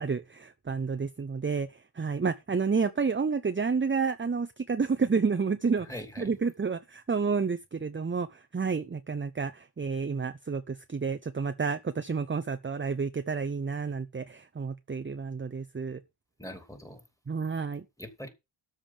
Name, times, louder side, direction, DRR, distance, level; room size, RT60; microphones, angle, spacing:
voice 1, 0.0-1.7 1.9-5.9 6.2-16.0 17.3-17.9, right 5 dB, 25° right, 0.7 m, -30 dB
voice 2, 5.8-6.4 16.4-17.0 18.0-18.3, equal, 5° left, 2.7 m, -42 dB
13.0 x 5.1 x 7.3 m
wide cardioid pair, 125°, 50 cm